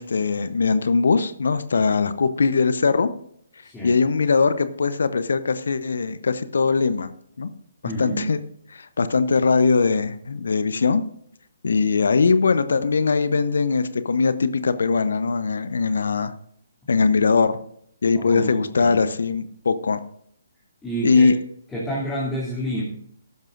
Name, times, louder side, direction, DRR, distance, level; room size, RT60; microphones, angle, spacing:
voice 1, 0.0-3.1 3.8-7.1 7.4-7.5 7.8-8.4 8.7-11.0 11.6-16.3 16.9-17.6 18.0-20.0 21.0-21.3, left 4 dB, 65° left, 13 dB, 0.7 m, -21 dB
voice 2, 3.6-3.9 7.8-8.3 18.1-19.0 20.8-21.3 21.7-22.8, right 1 dB, 10° left, -7 dB, 2.7 m, -29 dB
15.0 x 12.0 x 2.5 m, 0.67 s
figure-of-eight pair, 135°, 0 cm